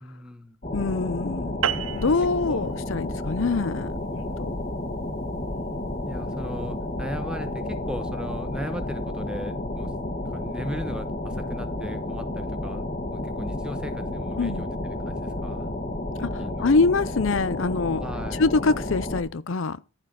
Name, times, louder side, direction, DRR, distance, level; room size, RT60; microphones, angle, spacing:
voice 1, 0.0-0.6 2.5-2.8 4.0-4.5 6.1-9.9 10.3-12.8 13.1-15.7 16.4-16.7 18.0-18.4, equal, 5° right, 1.2 m, -37 dB
sound 1, 0.6-19.2, left 1 dB, 35° left, 1.9 m, -31 dB
voice 2, 0.7-4.6 14.4-14.7 16.6-18.0 18.4-19.8, left 3 dB, 65° left, 0.6 m, -25 dB
sound 2, 1.6-6.4, right 9 dB, 75° right, 0.6 m, -34 dB
14.0 x 4.9 x 6.3 m
head